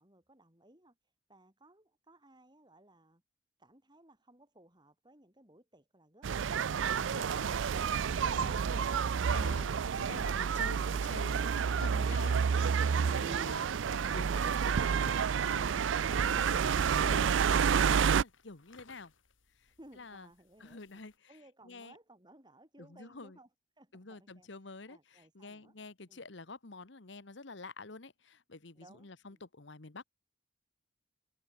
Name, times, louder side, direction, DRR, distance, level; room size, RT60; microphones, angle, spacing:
voice 1, 0.0-3.2 3.6-7.1 19.8-21.0 21.3-23.5 23.8-25.7 26.1-26.3 28.7-29.4, right 1 dB, 20° right, 6.1 m, -61 dB
sound 1, 6.2-18.2, right 7 dB, 70° right, 0.4 m, -29 dB
voice 2, 7.0-19.1 19.6-20.3 20.6-21.1 21.6-21.9 22.8-23.4 23.9-30.0, left 3 dB, 65° left, 1.3 m, -48 dB
sound 2, 14.0-21.2, left 5 dB, 80° left, 4.0 m, -66 dB
open air
head